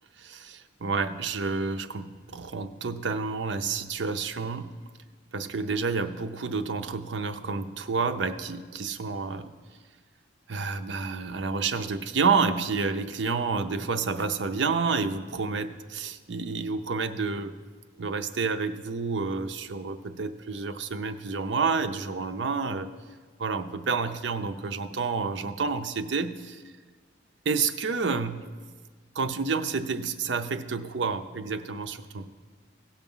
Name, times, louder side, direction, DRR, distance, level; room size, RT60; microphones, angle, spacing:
voice 1, 0.2-4.7 5.3-9.5 10.5-17.5 18.0-22.9 23.4-26.6 27.4-28.5 29.1-32.3, right 4 dB, 65° right, 9 dB, 0.6 m, -29 dB
16.5 x 5.9 x 5.5 m, 1.5 s
head